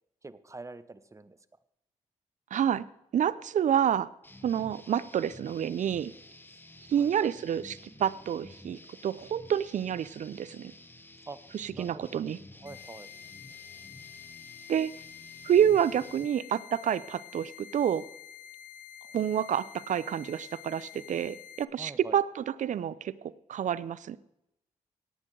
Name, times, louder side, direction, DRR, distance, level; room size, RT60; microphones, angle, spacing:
voice 1, 0.2-1.4 6.5-6.6 6.9-7.3 11.3-11.4 11.7-12.3 12.6-13.1 21.8-22.2, right 3 dB, 25° right, 13 dB, 0.9 m, -45 dB
voice 2, 2.5-2.8 3.1-4.1 4.4-6.1 6.9-10.7 11.5-12.4 14.7-14.9 15.4-18.0 19.1-24.2, right 9 dB, 70° right, 18 dB, 0.6 m, -28 dB
sound 1, 4.2-16.3, left 2 dB, 15° left, 1.1 m, -51 dB
sound 2, 12.7-21.7, left 10 dB, 80° left, 0.7 m, -48 dB
17.5 x 9.1 x 3.9 m, 0.84 s
cardioid pair, 65°, 13 cm